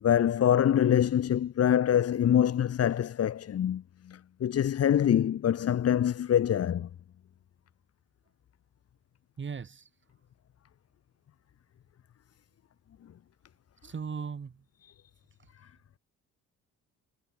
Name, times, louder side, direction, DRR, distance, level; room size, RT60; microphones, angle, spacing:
voice 1, 0.0-6.9 14.8-14.9, left 10 dB, 55° left, 1.2 m, -25 dB
voice 2, 9.4-9.9 13.8-14.6, right 6 dB, 40° right, 4.4 m, -37 dB
cardioid pair, 90°, 30 cm